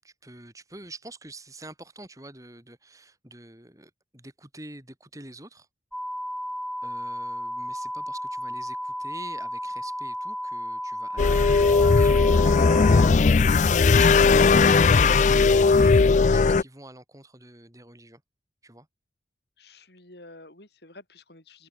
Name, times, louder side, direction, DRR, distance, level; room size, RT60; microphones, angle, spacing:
voice 1, 0.0-5.7 6.8-12.5 13.6-18.2 18.6-18.9, right 2 dB, 20° right, 7.9 m, -46 dB
sound 1, 5.9-13.1, equal, ahead, 1.9 m, -33 dB
sound 2, 11.2-16.6, left 4 dB, 40° left, 0.4 m, -18 dB
voice 2, 13.2-13.9 19.6-21.7, left 2 dB, 65° left, 5.2 m, -47 dB
open air
head